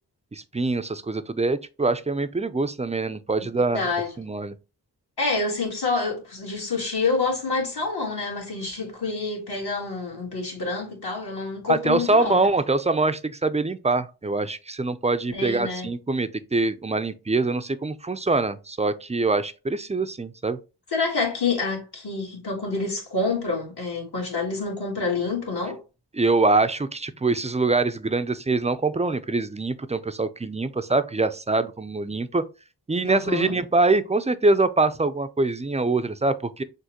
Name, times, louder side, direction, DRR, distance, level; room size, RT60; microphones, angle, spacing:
voice 1, 0.3-3.8 4.2-4.5 11.7-20.6 26.1-32.4 32.9-36.6, right 3 dB, 20° right, 0.3 m, -24 dB
voice 2, 3.7-4.1 5.2-12.4 15.3-15.9 20.9-25.8 33.0-33.5, left 3 dB, 70° left, 1.6 m, -27 dB
6.3 x 2.1 x 2.8 m
cardioid pair, 40°, 41 cm